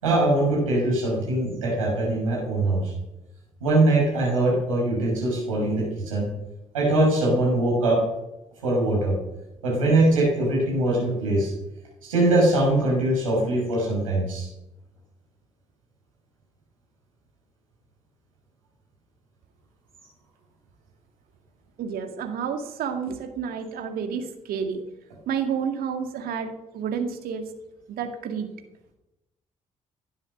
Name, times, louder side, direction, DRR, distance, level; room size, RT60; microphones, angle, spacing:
voice 1, 0.0-2.9 3.6-6.3 6.7-8.0 8.6-9.1 9.6-11.5 12.0-14.5, right 2 dB, 85° right, -3 dB, 6.0 m, -22 dB
voice 2, 21.8-24.8 25.3-27.5 27.9-28.5, right 7 dB, 65° right, 5 dB, 2.1 m, -30 dB
19.0 x 11.0 x 6.6 m, 0.94 s
figure-of-eight pair, 40°, 17 cm